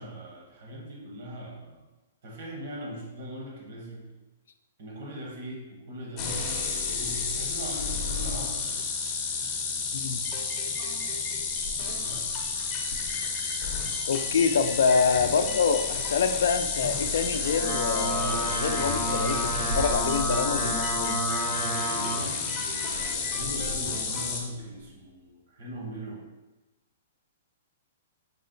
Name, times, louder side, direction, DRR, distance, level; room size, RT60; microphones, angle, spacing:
voice 1, 0.0-1.8 2.2-4.1 4.8-8.9 11.9-12.5 21.6-26.2, equal, 60° right, -2 dB, 1.4 m, -40 dB
sound 1, 6.2-24.4, left 5 dB, 25° left, 0.6 m, -31 dB
sound 2, 10.7-14.4 14.7-15.0 15.5-16.1 17.0-17.2 17.5-17.8 19.2-21.8 22.8-25.2, right 1 dB, 80° right, 0.8 m, -42 dB
voice 2, 14.1-21.2, left 5 dB, 80° left, 8 dB, 0.4 m, -26 dB
sound 3, 17.3-22.3, right 1 dB, 20° right, 0.5 m, -31 dB
5.5 x 2.1 x 3.9 m, 1.1 s
hypercardioid pair, 165°, 0 cm